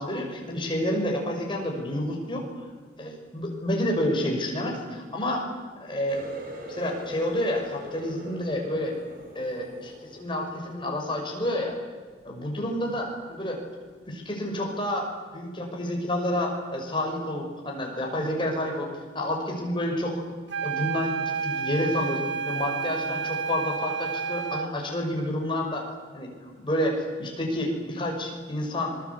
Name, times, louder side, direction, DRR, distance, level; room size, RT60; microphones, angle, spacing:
voice 1, 0.0-2.7 3.0-5.5 5.8-6.2 6.7-8.9 9.3-11.8 12.2-13.6 14.1-18.9 19.1-20.2 20.6-21.1 21.4-25.9 26.1-29.0, left 1 dB, 25° left, 1 dB, 6.1 m, -29 dB
Water tap faucet, 6.1-11.6 11.9-12.4 12.9-13.1 13.9-14.0, equal, 45° right, 6.8 m, -42 dB
sound 1, 20.5-24.8, right 6 dB, 65° right, 2.3 m, -30 dB
26.0 x 21.5 x 8.5 m, 1.5 s
head